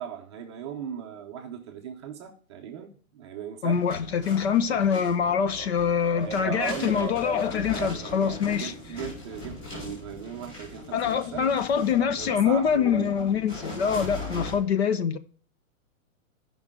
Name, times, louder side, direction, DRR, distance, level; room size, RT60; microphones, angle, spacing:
voice 1, 0.0-3.8 5.4-5.7 6.2-7.2 7.7-11.5 12.2-13.2, right 8 dB, 20° right, 0.6 m, -38 dB
voice 2, 3.6-8.7 10.9-15.2, left 7 dB, 50° left, 0.9 m, -25 dB
sound 1, 3.7-14.6, left 2 dB, 15° left, 4.8 m, -40 dB
14.5 x 5.4 x 3.7 m
hypercardioid pair, 170°, 41 cm